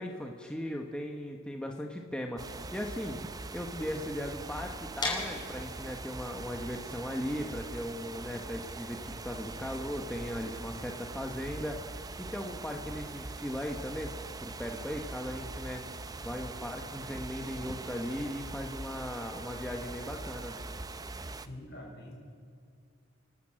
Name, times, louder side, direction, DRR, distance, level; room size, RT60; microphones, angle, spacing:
voice 1, 0.0-3.2 3.5-14.1 14.4-20.6, equal, 5° left, 2 dB, 1.1 m, -38 dB
sound 1, 2.4-21.5, right 3 dB, 20° right, 0.6 m, -42 dB
sound 2, 5.0-10.8, left 2 dB, 20° left, 5.4 m, -40 dB
voice 2, 21.3-22.1, left 1 dB, 55° left, -2 dB, 6.4 m, -46 dB
30.0 x 12.0 x 7.6 m, 2.4 s
head